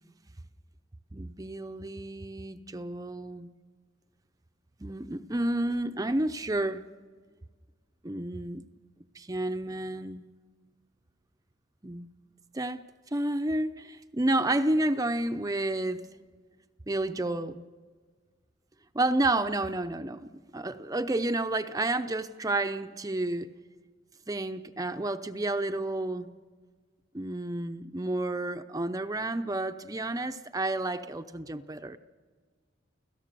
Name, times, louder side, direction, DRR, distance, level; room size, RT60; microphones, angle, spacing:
voice 1, 1.1-3.5 4.8-6.8 8.0-8.6 9.1-10.3 11.8-12.1 12.5-12.8 13.1-16.0 16.9-17.6 18.9-23.5 24.3-26.3 27.1-32.0, right 2 dB, 20° right, 8 dB, 0.6 m, -30 dB
29.5 x 17.5 x 6.8 m, 1.5 s
head